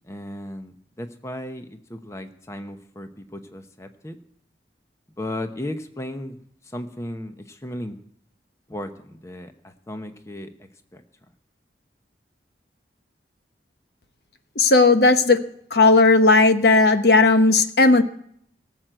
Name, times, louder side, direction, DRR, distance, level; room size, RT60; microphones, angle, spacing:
voice 1, 0.1-4.2 5.2-6.4 6.6-8.0 8.7-11.0, left 1 dB, 15° left, 7 dB, 0.9 m, -35 dB
voice 2, 14.6-15.4 15.7-18.0, left 3 dB, 65° left, 8 dB, 1.0 m, -15 dB
18.5 x 7.5 x 7.9 m, 0.66 s
head